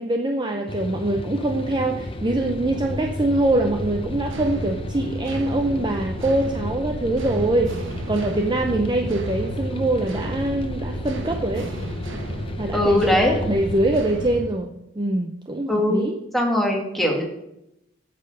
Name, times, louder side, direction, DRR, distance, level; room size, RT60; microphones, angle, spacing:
voice 1, 0.0-11.7 12.6-16.2, right 2 dB, 25° right, 4 dB, 0.6 m, -24 dB
sound 1, 0.7-14.0, left 2 dB, 30° left, 0.6 m, -33 dB
sound 2, 2.0-14.5, right 1 dB, 80° right, 1.0 m, -33 dB
voice 2, 12.7-13.4 15.7-16.0 16.3-17.2, left 1 dB, ahead, -1 dB, 1.8 m, -20 dB
8.6 x 6.7 x 6.5 m, 0.85 s
head